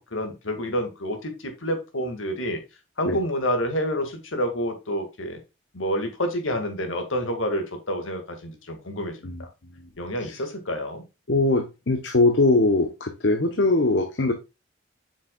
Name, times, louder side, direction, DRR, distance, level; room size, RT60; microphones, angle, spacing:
voice 1, 0.1-2.6 3.0-5.4 5.7-9.5 10.0-11.0, equal, 80° left, 5 dB, 2.1 m, -28 dB
voice 2, 11.3-14.3, left 2 dB, 60° left, 6 dB, 1.0 m, -22 dB
8.1 x 6.4 x 2.4 m, 0.26 s
head